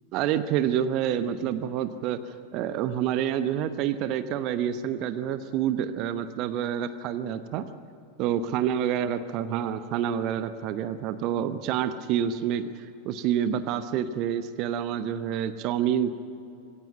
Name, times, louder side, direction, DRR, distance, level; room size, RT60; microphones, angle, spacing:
voice 1, 0.1-2.2 2.5-7.7 8.2-12.7 13.0-16.1, right 9 dB, 40° right, 11 dB, 1.0 m, -28 dB
21.5 x 16.5 x 9.3 m, 2.6 s
figure-of-eight pair, 90°, 0 cm